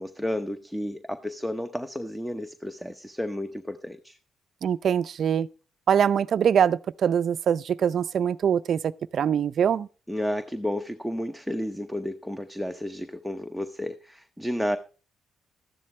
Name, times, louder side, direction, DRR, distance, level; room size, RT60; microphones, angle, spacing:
voice 1, 0.0-4.2 10.1-14.8, left 1 dB, ahead, 0.8 m, -32 dB
voice 2, 4.6-5.5 5.9-9.9, right 8 dB, 60° right, 0.5 m, -23 dB
13.5 x 10.5 x 3.2 m
cardioid pair, 90°, 0 cm